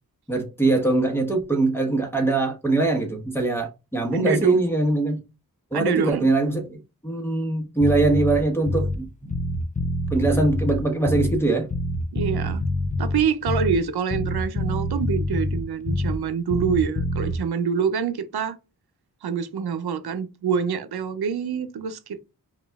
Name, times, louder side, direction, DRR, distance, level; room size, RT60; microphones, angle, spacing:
voice 1, 0.3-5.2 5.7-9.4 10.1-11.7, right 2 dB, 5° left, 1.1 m, -22 dB
voice 2, 4.1-4.6 5.7-6.3 12.1-12.6 13.0-18.6 19.2-22.2, right 6 dB, 90° right, 0.5 m, -26 dB
Bass guitar, 7.8-9.1 9.3-11.5 11.7-13.9 14.1-16.3 16.5-17.4, left 2 dB, 20° left, 0.4 m, -26 dB
5.0 x 2.4 x 2.3 m
wide cardioid pair, 95°, 37 cm